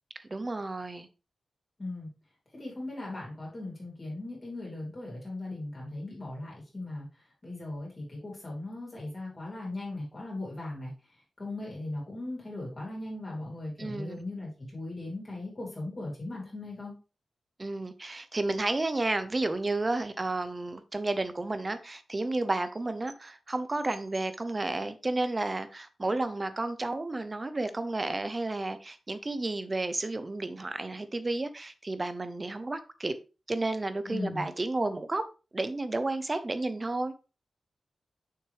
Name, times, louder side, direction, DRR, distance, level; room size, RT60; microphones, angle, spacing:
voice 1, 0.2-1.1 13.8-14.2 17.6-33.1 33.5-35.2 35.5-37.1, right 2 dB, 25° right, 0.6 m, -32 dB
voice 2, 2.5-7.1 7.4-10.9 11.4-16.9 34.1-34.4, left 2 dB, 25° left, 3.5 m, -38 dB
6.9 x 5.9 x 3.2 m
wide cardioid pair, 175°, 0 cm